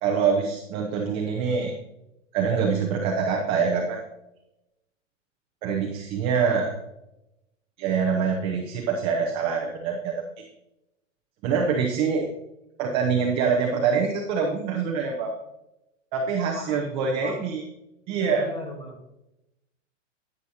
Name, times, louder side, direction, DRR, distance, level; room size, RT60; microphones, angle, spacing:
voice 1, 0.0-1.7 2.3-4.0 5.6-6.7 7.8-10.4 11.4-12.3 12.8-15.3 16.1-17.6 18.1-18.5, right 5 dB, 15° right, 1 dB, 0.5 m, -25 dB
voice 2, 16.5-17.4 18.3-19.2, left 2 dB, 15° left, 4 dB, 1.2 m, -40 dB
10.0 x 9.6 x 2.8 m, 0.89 s
hypercardioid pair, 155°, 39 cm